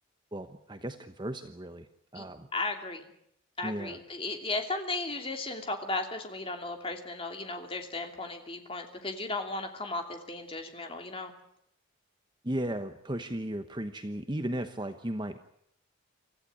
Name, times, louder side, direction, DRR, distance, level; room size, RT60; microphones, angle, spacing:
voice 1, 0.3-1.9 2.1-2.5 3.6-4.0 12.4-15.4, right 1 dB, 20° right, 8 dB, 1.0 m, -35 dB
voice 2, 2.5-3.1 3.6-11.3, left 2 dB, 25° left, 4 dB, 2.9 m, -35 dB
25.5 x 15.0 x 9.9 m, 0.73 s
head